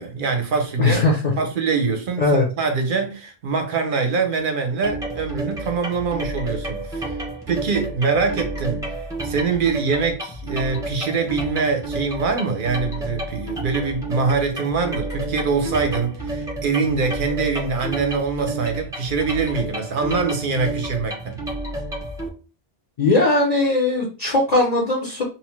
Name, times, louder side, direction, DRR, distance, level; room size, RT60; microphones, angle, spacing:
voice 1, 0.0-1.0 1.4-7.2 7.5-8.8 9.2-21.4, right 4 dB, 60° right, 0.7 m, -24 dB
voice 2, 0.8-1.3 2.2-2.5 23.0-25.2, left 2 dB, 45° left, 0.6 m, -19 dB
sound 1, 4.8-22.3, right 1 dB, 5° right, 0.5 m, -30 dB
2.8 x 2.0 x 3.0 m
omnidirectional pair, 1.1 m